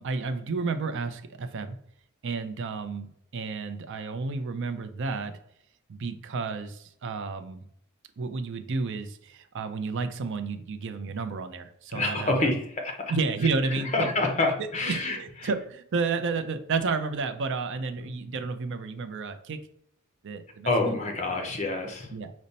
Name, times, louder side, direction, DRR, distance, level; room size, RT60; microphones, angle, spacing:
voice 1, 0.0-1.8 2.2-5.4 5.9-7.6 8.2-12.5 13.1-14.1 14.6-19.6 20.2-21.0 22.1-22.3, right 4 dB, 60° right, 9 dB, 0.5 m, -31 dB
voice 2, 11.9-13.1 13.9-15.2 20.7-22.1, left 2 dB, 35° left, 3 dB, 0.7 m, -27 dB
5.2 x 2.1 x 4.1 m, 0.70 s
head